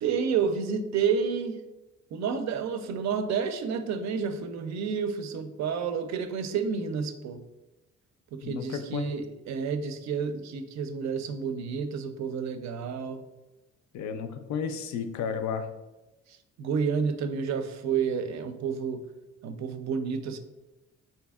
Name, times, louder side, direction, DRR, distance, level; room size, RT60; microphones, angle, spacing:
voice 1, 0.0-1.6 2.1-7.4 8.3-13.3 16.6-19.1 19.4-20.4, right 6 dB, 65° right, 8 dB, 0.4 m, -30 dB
voice 2, 8.4-9.0 13.9-15.6, left 6 dB, 70° left, 8 dB, 0.4 m, -32 dB
3.4 x 2.8 x 2.3 m, 1.0 s
cardioid pair, 90°, 30 cm